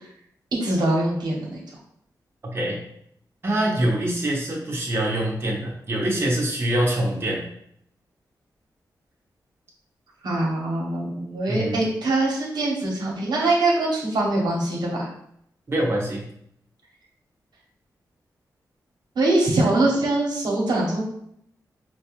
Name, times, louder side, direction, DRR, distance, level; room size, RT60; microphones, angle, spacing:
voice 1, 0.6-1.6 10.2-15.1 19.1-21.0, right 2 dB, 85° right, -3 dB, 1.0 m, -23 dB
voice 2, 3.4-7.4 11.5-11.8 15.7-16.2, right 1 dB, 35° right, -3 dB, 0.9 m, -24 dB
4.5 x 2.2 x 3.0 m, 0.70 s
wide cardioid pair, 110°, 7 cm